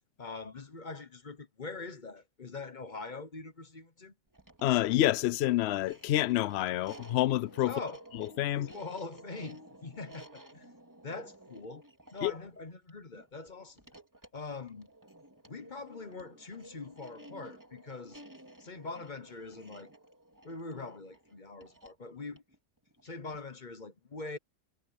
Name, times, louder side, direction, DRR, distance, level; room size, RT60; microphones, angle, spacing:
voice 1, 0.2-4.1 7.6-8.0 8.6-10.8 11.0-11.8 12.1-13.8 14.3-14.9 15.5-18.2 18.6-19.9 20.4-22.4 23.0-24.4, left 3 dB, 35° left, 1.0 m, -43 dB
sound 1, 4.3-23.6, right 1 dB, 10° right, 2.5 m, -54 dB
voice 2, 4.6-7.7 8.4-8.7 12.2-12.3, left 14 dB, 70° left, 0.6 m, -28 dB
omnidirectional pair, 1.6 m